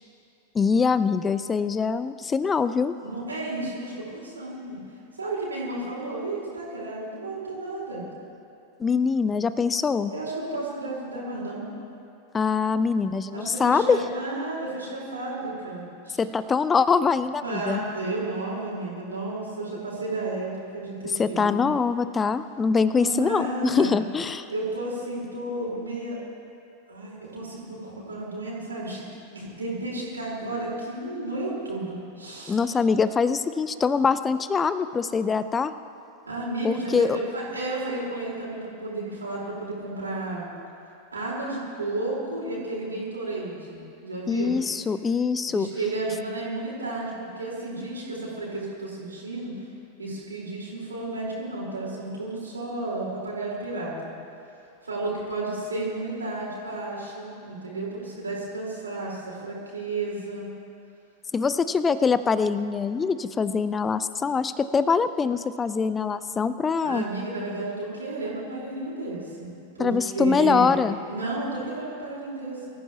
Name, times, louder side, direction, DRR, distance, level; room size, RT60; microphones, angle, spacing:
voice 1, 0.5-2.9 8.8-10.1 12.3-14.0 16.2-17.8 21.2-24.5 32.5-35.7 36.6-37.2 44.3-45.7 61.3-67.0 69.8-71.0, left 5 dB, 15° left, 14 dB, 0.6 m, -23 dB
voice 2, 3.0-4.8 5.2-8.0 10.1-11.7 13.3-16.2 17.4-21.7 23.0-24.0 24.5-26.2 26.9-29.0 29.3-32.6 36.2-40.5 41.1-44.6 45.5-49.5 50.0-54.1 54.8-60.5 66.8-70.8 71.1-72.6, right 2 dB, 75° right, -5 dB, 4.3 m, -32 dB
24.0 x 14.5 x 3.0 m, 2.8 s
figure-of-eight pair, 90°, 0 cm